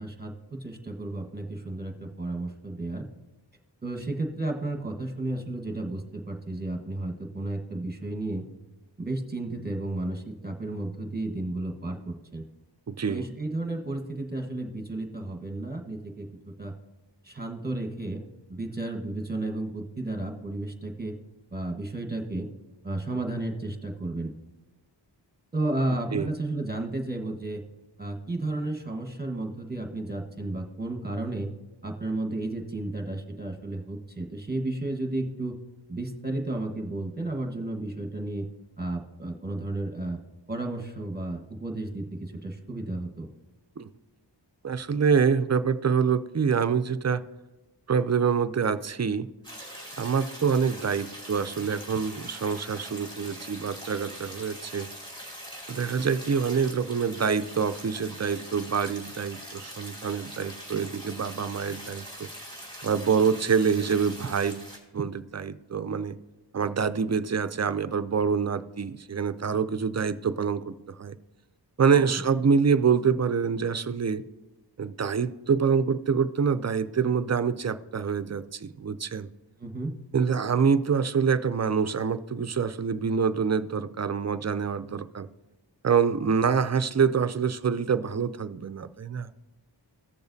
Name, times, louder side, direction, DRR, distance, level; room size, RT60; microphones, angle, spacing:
voice 1, 0.0-3.0 3.8-8.4 9.0-12.4 13.0-16.3 16.6-16.7 17.2-18.2 18.5-21.1 21.5-22.5 22.8-24.3 25.5-27.6 28.0-31.5 31.8-35.6 35.9-38.5 38.8-40.2 40.5-43.3 71.9-72.2 79.6-79.9, right 2 dB, 20° right, 4 dB, 1.3 m, -33 dB
voice 2, 12.9-13.2 26.1-26.3 43.8-43.9 44.6-47.2 47.9-49.3 50.0-54.9 55.7-62.3 62.8-64.7 64.9-66.1 66.5-70.7 71.0-71.1 71.8-74.2 74.8-79.3 80.1-85.3 85.8-89.3, right 6 dB, 40° right, 12 dB, 0.4 m, -26 dB
sound 1, 49.4-64.8, equal, 10° left, 2.6 m, -43 dB
16.0 x 6.9 x 2.7 m, 1.1 s
wide cardioid pair, 60°, 44 cm